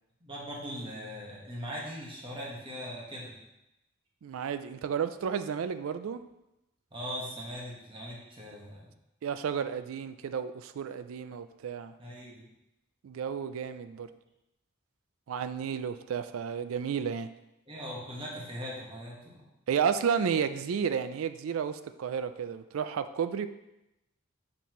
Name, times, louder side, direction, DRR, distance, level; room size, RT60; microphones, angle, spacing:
voice 1, 0.2-3.3 6.9-8.9 12.0-12.4 17.7-19.5, equal, 25° right, -4 dB, 1.5 m, -40 dB
voice 2, 4.2-6.2 9.2-11.9 13.0-14.1 15.3-17.3 19.7-23.5, right 7 dB, 85° right, 12 dB, 0.4 m, -32 dB
7.1 x 5.4 x 3.1 m, 0.90 s
head